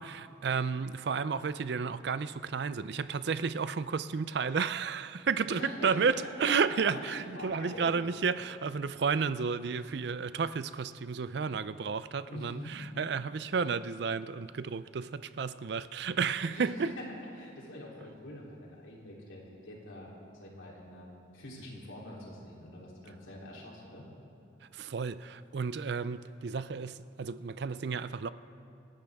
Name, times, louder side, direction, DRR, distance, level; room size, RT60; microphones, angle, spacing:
voice 1, 0.0-16.9 24.7-28.3, right 5 dB, 60° right, 14 dB, 0.4 m, -32 dB
voice 2, 5.5-8.0 12.3-12.8 16.5-17.0 17.4-21.1 21.3-24.1, left 1 dB, 85° left, -4 dB, 3.4 m, -44 dB
27.5 x 11.0 x 3.5 m, 2.7 s
head